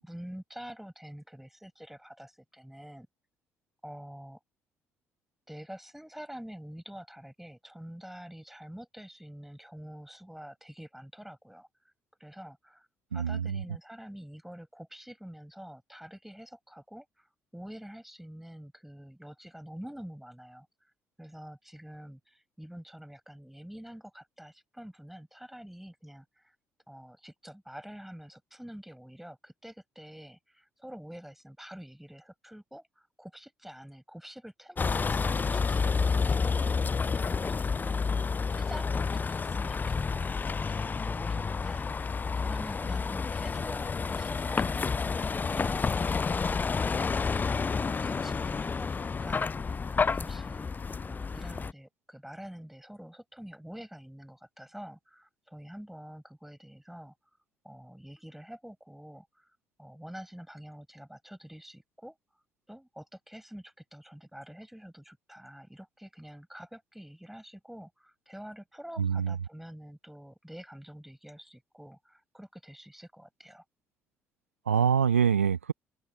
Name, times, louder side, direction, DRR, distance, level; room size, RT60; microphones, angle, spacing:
voice 1, 0.0-3.1 3.8-4.4 5.5-11.7 12.2-12.9 13.1-20.7 21.2-26.6 26.9-46.0 47.3-50.7 51.0-57.1 57.6-59.5 59.8-73.6, equal, 5° right, 7.4 m, -47 dB
voice 2, 13.1-13.6 69.0-69.4 74.7-75.7, right 7 dB, 85° right, 0.8 m, -25 dB
Vehicle, 34.8-51.7, left 5 dB, 25° left, 0.4 m, -30 dB
figure-of-eight pair, 45°, 7 cm